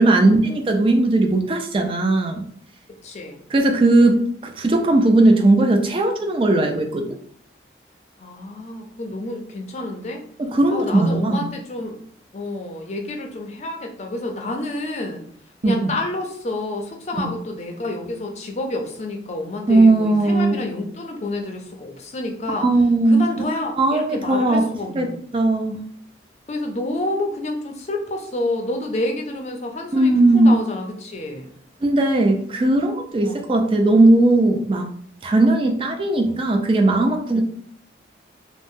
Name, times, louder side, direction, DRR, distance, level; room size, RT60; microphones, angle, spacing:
voice 1, 0.0-2.4 3.5-7.1 10.4-11.4 15.6-15.9 17.2-17.3 19.7-20.6 22.6-23.2 23.8-24.6 25.0-25.1 25.3-25.8 29.9-30.6 31.8-34.9 35.2-37.4, right 2 dB, 30° right, 5 dB, 0.3 m, -17 dB
voice 2, 3.0-3.4 8.2-10.2 10.7-12.0 12.3-15.2 15.6-22.7 23.1-25.1 26.5-31.5 33.2-33.4 37.3-37.4, left 2 dB, 40° left, 2 dB, 0.4 m, -29 dB
2.6 x 2.0 x 3.5 m, 0.62 s
head